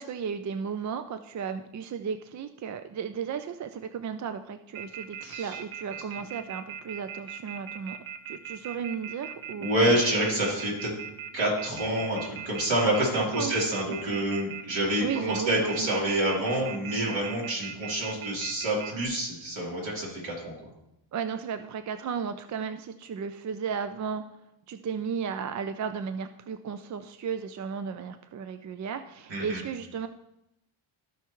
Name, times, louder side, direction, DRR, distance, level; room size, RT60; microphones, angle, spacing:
voice 1, 0.0-8.0 8.3-10.0 13.1-13.6 15.0-16.0 21.1-24.2 24.7-30.1, right 6 dB, 40° right, 10 dB, 0.4 m, -34 dB
Telephone, 4.7-19.0, right 9 dB, 80° right, 0.9 m, -39 dB
voice 2, 5.2-5.6 9.6-10.9 11.3-20.5 29.3-29.6, right 1 dB, 65° right, -4 dB, 3.9 m, -27 dB
15.5 x 5.7 x 3.1 m, 0.86 s
cardioid pair, 125°, 49 cm